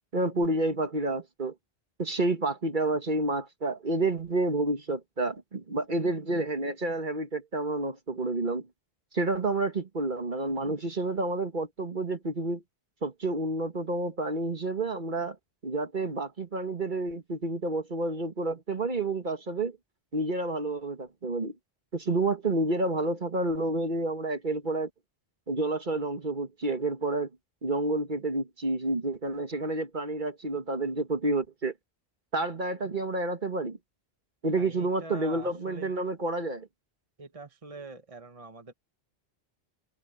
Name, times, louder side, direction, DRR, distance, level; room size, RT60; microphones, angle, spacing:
voice 1, 0.1-1.5 2.0-8.7 9.1-12.6 13.0-15.4 15.6-19.8 20.1-21.6 21.9-24.9 25.5-27.3 27.6-31.7 32.3-33.8 34.4-36.7, right 2 dB, 50° right, 1.8 m, -29 dB
voice 2, 34.5-35.9 37.2-38.7, right 3 dB, 35° right, 1.2 m, -44 dB
omnidirectional pair, 1.1 m